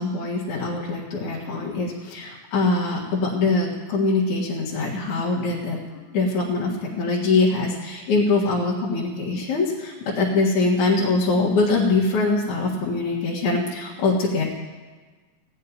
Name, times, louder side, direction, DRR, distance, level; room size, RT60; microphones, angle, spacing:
voice 1, 0.0-5.8 6.1-14.4, left 3 dB, 60° left, -5 dB, 2.9 m, -23 dB
16.0 x 6.6 x 9.8 m, 1.4 s
omnidirectional pair, 4.1 m